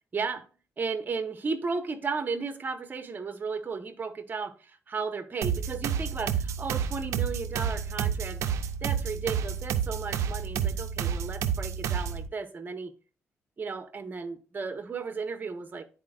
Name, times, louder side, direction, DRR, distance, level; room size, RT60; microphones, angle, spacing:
voice 1, 0.1-0.4 0.8-12.9 13.6-15.8, right 4 dB, 40° right, 1.0 m, -34 dB
sound 1, 5.4-12.3, right 8 dB, 85° right, 0.5 m, -30 dB
10.5 x 4.3 x 2.4 m
cardioid pair, 80°, 5 cm